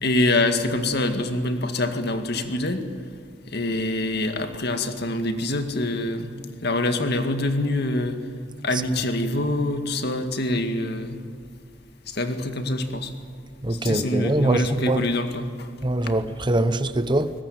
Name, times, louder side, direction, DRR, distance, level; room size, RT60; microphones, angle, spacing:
voice 1, 0.0-2.8 3.5-6.3 6.6-8.2 8.6-11.2 12.1-13.1 13.8-15.7, left 2 dB, 60° left, 2.1 m, -25 dB
voice 2, 13.6-15.1 15.8-17.3, right 1 dB, 25° right, 0.9 m, -23 dB
22.5 x 20.0 x 9.5 m
head